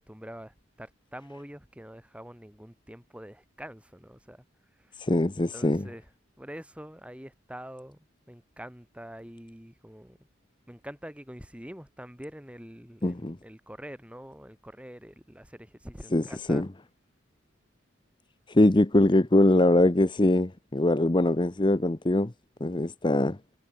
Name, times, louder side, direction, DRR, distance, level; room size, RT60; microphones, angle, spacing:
voice 1, 0.0-4.4 4.8-5.0 5.5-6.0 6.4-8.0 8.3-10.2 10.7-16.6, equal, 5° right, 3.9 m, -45 dB
voice 2, 5.0-5.9 13.0-13.4 16.1-16.7 18.5-22.3 22.6-23.4, left 1 dB, 25° left, 0.9 m, -22 dB
head